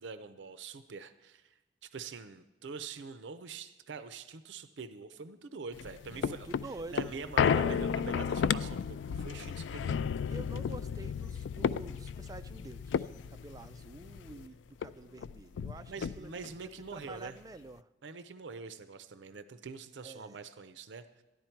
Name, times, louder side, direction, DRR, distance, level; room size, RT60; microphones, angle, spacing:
voice 1, 0.0-1.5 1.8-6.5 6.9-10.0 15.9-17.4 18.0-21.2, right 5 dB, 85° right, 11 dB, 0.5 m, -45 dB
sound 1, 5.7-14.4 14.8-14.9 15.2-16.5 17.0-17.1, left 7 dB, 90° left, 0.3 m, -33 dB
voice 2, 6.1-7.9 10.3-17.9 20.0-20.4, right 2 dB, 20° right, 11 dB, 0.4 m, -48 dB
14.0 x 10.5 x 4.5 m, 1.1 s
head